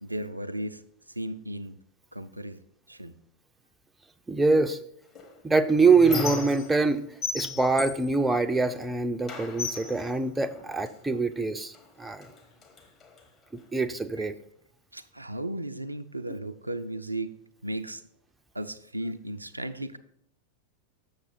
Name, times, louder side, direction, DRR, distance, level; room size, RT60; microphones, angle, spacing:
voice 1, 0.0-0.8 1.2-1.8 2.1-2.6 2.9-3.2 14.2-14.3 14.9-17.4 17.6-18.0 18.5-20.0, right 1 dB, 85° right, 8 dB, 0.4 m, -35 dB
voice 2, 4.3-4.8 5.4-7.0 7.3-12.3 13.5-14.3, right 4 dB, 10° right, 8 dB, 0.4 m, -24 dB
Squeak, 5.1-6.9 7.2-8.9 9.3-11.0 11.7-11.9 12.2-13.2, left 4 dB, 30° left, 1.3 m, -36 dB
7.2 x 6.6 x 3.9 m, 0.69 s
figure-of-eight pair, 90°, 0 cm